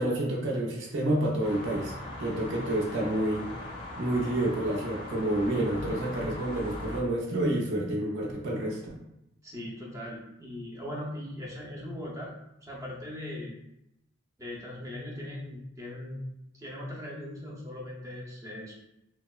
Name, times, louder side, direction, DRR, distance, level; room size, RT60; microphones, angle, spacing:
voice 1, 0.0-1.9 2.2-3.5 4.0-8.8, right 1 dB, 70° right, -3 dB, 0.5 m, -29 dB
sound 1, 1.4-7.0, left 1 dB, 30° left, 0.5 m, -40 dB
voice 2, 9.4-12.3 12.6-13.6 14.4-16.2 16.6-18.8, left 1 dB, 15° right, -3 dB, 0.5 m, -39 dB
2.8 x 2.0 x 2.2 m, 0.84 s
head